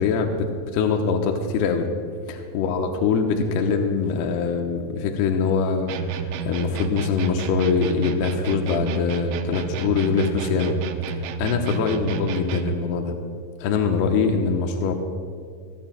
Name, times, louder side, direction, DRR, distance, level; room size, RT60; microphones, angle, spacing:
voice 1, 0.0-1.9 2.3-10.8 11.4-13.1 13.6-14.9, left 5 dB, 80° left, 3 dB, 2.4 m, -23 dB
sound 1, 5.9-12.9, right 8 dB, 85° right, 3.3 m, -31 dB
27.0 x 16.5 x 2.3 m, 2.2 s
omnidirectional pair, 5.7 m